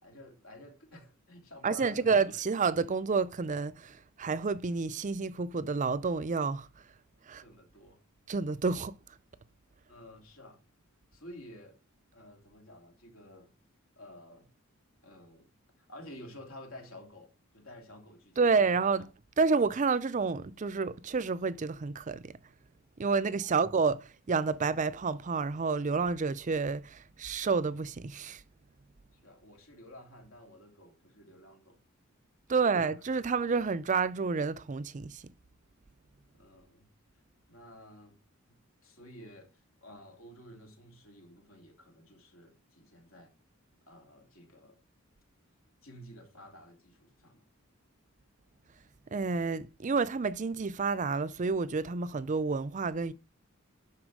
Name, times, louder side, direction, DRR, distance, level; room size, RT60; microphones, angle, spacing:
voice 1, 0.0-2.2 7.4-8.0 9.9-10.6 11.1-11.8 12.1-13.5 14.0-14.5 15.0-15.5 15.9-18.4 23.4-23.7 29.2-31.8 32.6-32.9 36.3-36.9 37.5-38.2 38.5-43.3 43.9-44.8 45.8-47.5, left 1 dB, 70° left, 2.9 m, -52 dB
voice 2, 1.6-6.7 7.3-7.4 8.3-9.0 18.4-19.0 19.4-22.3 23.0-28.4 32.5-35.2 49.1-53.1, right 4 dB, 35° right, 0.5 m, -29 dB
11.5 x 4.3 x 6.2 m
head